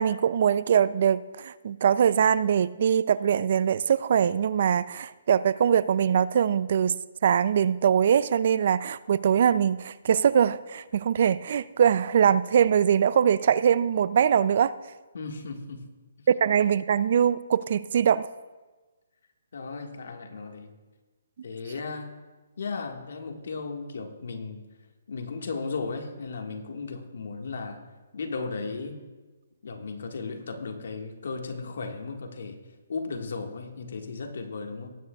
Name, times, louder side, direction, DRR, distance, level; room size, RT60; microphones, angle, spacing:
voice 1, 0.0-6.9 7.2-14.8 16.4-18.3, right 8 dB, 50° right, 17 dB, 0.4 m, -22 dB
voice 2, 15.1-15.8 19.5-20.7 21.4-22.1 22.6-24.6 25.1-27.8 28.1-29.0 29.6-32.6 32.9-34.9, left 4 dB, 70° left, 3 dB, 1.6 m, -35 dB
19.0 x 9.1 x 2.3 m, 1.3 s
hypercardioid pair, 160°, 0 cm